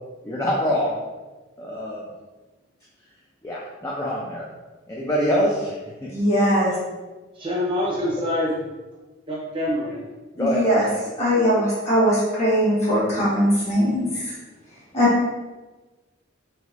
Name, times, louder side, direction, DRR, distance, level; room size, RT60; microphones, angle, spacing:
voice 1, 0.2-0.9 1.6-2.0 3.4-4.4 4.9-5.7 6.0-6.1 10.4-10.9, equal, 15° left, -5 dB, 0.3 m, -24 dB
voice 2, 6.1-6.7 10.4-10.9 11.2-14.3 14.9-15.1, equal, 35° left, -8 dB, 1.4 m, -20 dB
voice 3, 7.3-8.6 9.3-10.1, left 1 dB, 25° right, -5 dB, 0.7 m, -25 dB
3.2 x 3.1 x 2.4 m, 1.2 s
head